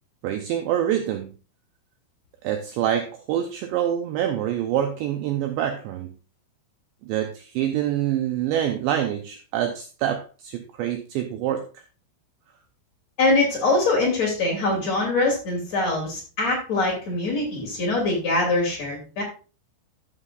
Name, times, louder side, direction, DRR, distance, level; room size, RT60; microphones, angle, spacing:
voice 1, 0.2-1.3 2.4-6.1 7.1-11.8, right 10 dB, 85° right, 5 dB, 2.5 m, -26 dB
voice 2, 13.2-19.2, left 2 dB, 40° left, -2 dB, 3.2 m, -23 dB
13.5 x 7.3 x 2.5 m, 0.34 s
omnidirectional pair, 6.0 m